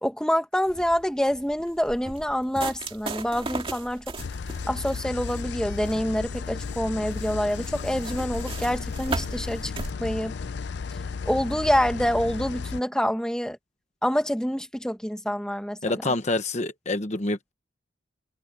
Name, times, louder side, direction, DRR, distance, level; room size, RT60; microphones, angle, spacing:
voice 1, 0.0-4.0 4.7-9.7 10.0-10.3 11.3-13.6 14.0-15.8, equal, 5° left, 1.7 m, -26 dB
sound 1, 0.7-9.9, right 2 dB, 30° right, 2.5 m, -37 dB
sound 2, 4.2-12.8, left 5 dB, 60° left, 0.4 m, -34 dB
voice 2, 15.8-17.5, left 2 dB, 35° left, 1.1 m, -27 dB
head